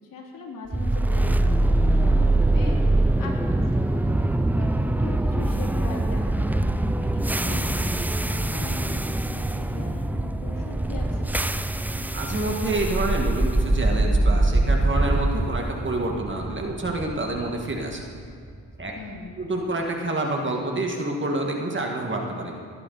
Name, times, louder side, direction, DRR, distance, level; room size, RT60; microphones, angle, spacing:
voice 1, 0.0-4.1 4.5-11.4 18.9-19.4, left 3 dB, 55° left, 0 dB, 2.8 m, -40 dB
sound 1, 0.7-18.8, right 2 dB, 5° right, 0.3 m, -23 dB
voice 2, 12.0-18.0 18.8-18.9 19.4-22.6, right 2 dB, 30° right, 1 dB, 1.9 m, -28 dB
18.5 x 11.0 x 4.1 m, 2.2 s
supercardioid pair, 70°, 41 cm